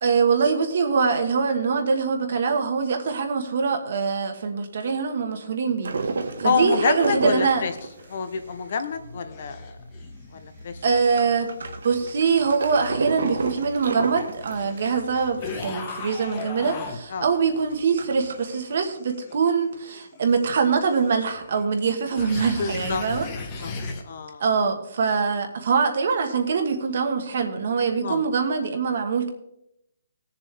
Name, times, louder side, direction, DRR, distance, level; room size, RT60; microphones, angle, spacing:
voice 1, 0.0-5.9 6.4-7.6 10.8-11.5 11.8-23.3 23.6-23.7 24.4-29.3, right 5 dB, 50° right, 5 dB, 1.4 m, -23 dB
sound 1, 5.8-9.9 10.2-10.3 10.5-15.8 16.2-16.3 16.5-16.6 17.2-18.4, right 4 dB, 75° right, 1.3 m, -31 dB
sound 2, 6.3-8.7 9.0-17.0 17.4-24.0, left 3 dB, 20° left, 1.1 m, -39 dB
voice 2, 6.4-7.7 8.1-9.7 10.3-10.8 14.7-14.8 17.1-17.3 22.6-23.0 23.4-23.7 24.0-24.4 27.9-28.2, left 5 dB, 45° left, 9 dB, 0.9 m, -27 dB
17.5 x 7.0 x 3.4 m, 0.80 s
hypercardioid pair, 175°, 0 cm